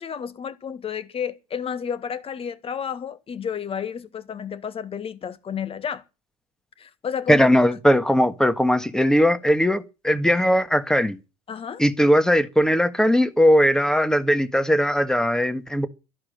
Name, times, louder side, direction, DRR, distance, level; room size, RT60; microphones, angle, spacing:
voice 1, 0.0-6.0 6.8-7.5 11.5-11.8, left 7 dB, 30° left, 1.7 m, -31 dB
voice 2, 7.3-11.2 11.8-15.9, equal, 5° left, 1.6 m, -19 dB
12.5 x 11.5 x 7.7 m
hypercardioid pair, 80°, 18 cm